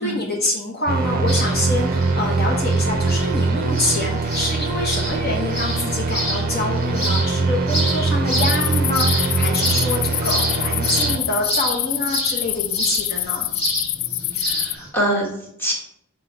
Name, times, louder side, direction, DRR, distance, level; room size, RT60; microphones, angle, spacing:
voice 1, 0.0-13.5, left 2 dB, 50° left, -1 dB, 1.0 m, -26 dB
sound 1, 0.9-11.2, right 3 dB, 45° right, 0.5 m, -22 dB
sound 2, 1.3-14.9, equal, 30° left, 1.6 m, -29 dB
sound 3, 8.4-14.7, left 15 dB, 75° left, 0.3 m, -26 dB
voice 2, 14.3-15.7, right 1 dB, 10° left, -3 dB, 1.5 m, -25 dB
6.1 x 3.9 x 4.5 m, 0.75 s
head